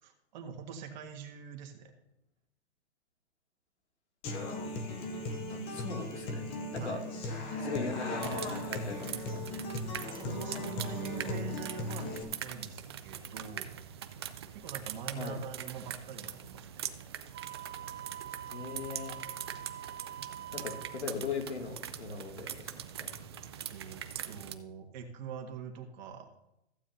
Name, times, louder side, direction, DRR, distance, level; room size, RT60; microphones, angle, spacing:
voice 1, 0.0-1.9 6.8-7.2 10.1-13.7 14.5-16.9 23.7-26.3, right 7 dB, 40° right, 3 dB, 1.7 m, -44 dB
Human voice / Acoustic guitar, 4.2-12.2, left 2 dB, 15° left, 0.6 m, -37 dB
voice 2, 5.5-7.0 7.6-9.5 15.2-15.4 18.5-19.2 20.5-22.7 23.0-23.1, left 4 dB, 75° left, 2 dB, 2.5 m, -39 dB
sound 1, 8.2-24.5, right 9 dB, 25° right, 0.4 m, -43 dB
Wind instrument woodwind instrument, 17.3-21.1, right 12 dB, 80° right, 0.8 m, -45 dB
14.5 x 8.5 x 2.7 m, 0.85 s
hypercardioid pair, 150°, 34 cm